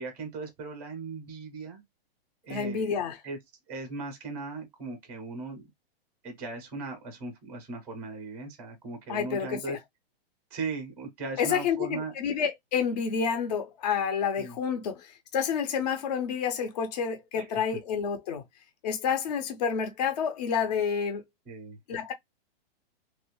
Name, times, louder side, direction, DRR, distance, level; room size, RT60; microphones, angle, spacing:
voice 1, 0.0-1.8 2.4-2.9 3.2-3.4 3.7-5.7 6.2-9.8 10.5-12.1 14.4-14.5 17.4-17.5 21.5-21.8, right 3 dB, 5° right, 0.5 m, -38 dB
voice 2, 2.5-3.2 9.1-9.8 11.4-18.4 18.8-21.2 21.9-22.1, left 7 dB, 40° left, 0.5 m, -29 dB
3.1 x 2.4 x 2.9 m
hypercardioid pair, 175°, 31 cm